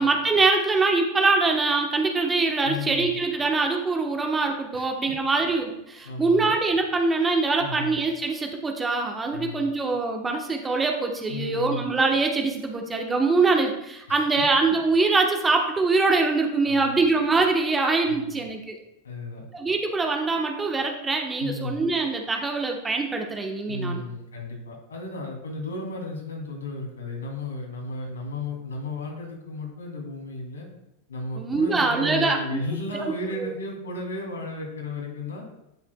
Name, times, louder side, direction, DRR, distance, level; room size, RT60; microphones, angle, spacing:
voice 1, 0.0-18.8 19.5-24.0 31.4-32.6 33.4-33.5, right 3 dB, 15° right, 3 dB, 1.1 m, -23 dB
voice 2, 2.6-3.2 4.7-4.9 6.0-6.5 7.6-8.0 9.3-9.7 11.3-11.9 14.1-14.2 16.6-17.0 18.0-18.4 19.0-19.4 21.4-21.8 23.7-30.7 31.1-35.5, left 2 dB, 70° left, 0 dB, 2.7 m, -34 dB
10.5 x 8.8 x 2.3 m, 0.84 s
figure-of-eight pair, 90°, 0 cm